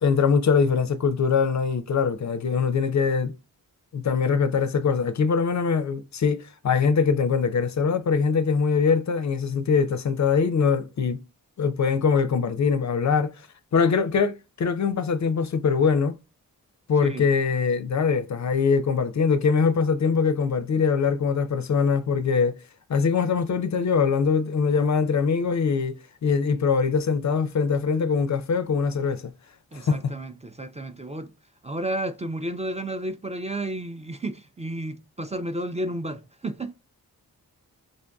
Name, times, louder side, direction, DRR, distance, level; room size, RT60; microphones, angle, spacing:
voice 1, 0.0-3.3 3.9-11.2 11.6-13.5 13.7-16.2 16.9-22.6 22.9-29.3 29.7-30.1, left 5 dB, 50° left, 0.5 m, -23 dB
voice 2, 29.7-31.3 31.6-36.7, right 1 dB, 20° right, 0.4 m, -32 dB
5.1 x 2.5 x 2.3 m
cardioid pair, 50°, 37 cm